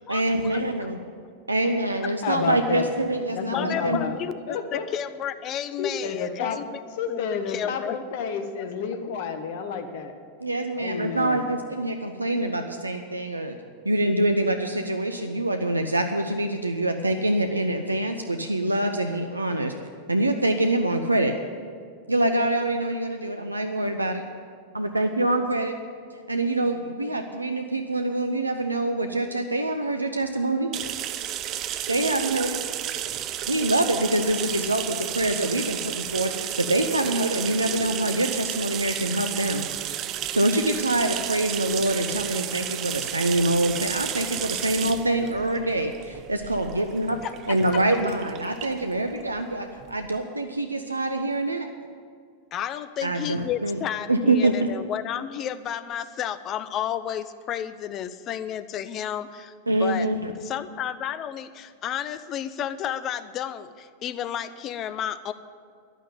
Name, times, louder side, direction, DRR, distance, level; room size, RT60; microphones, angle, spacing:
voice 1, 0.1-1.0 1.5-4.0 10.4-13.6 13.8-19.7 20.1-21.3 22.1-24.2 24.7-25.8 26.3-30.7 31.9-32.6 33.5-39.7 40.3-45.9 46.3-47.2 47.5-51.7 53.0-53.8 54.1-54.5 59.7-60.3, right 1 dB, 85° right, 6 dB, 0.6 m, -25 dB
voice 2, 2.2-2.9 3.3-4.9 5.8-10.1 10.8-11.6, left 6 dB, 50° left, 7 dB, 1.3 m, -31 dB
voice 3, 3.5-4.6 4.9-6.6 7.1-7.2 7.5-8.0 47.2-47.3 47.7-47.8 52.5-60.1 60.4-65.3, left 10 dB, 35° left, 13 dB, 0.6 m, -32 dB
sound 1, 30.7-50.2, right 11 dB, 35° right, 0.6 m, -32 dB
11.0 x 9.1 x 9.2 m, 2.1 s
figure-of-eight pair, 90°, 0 cm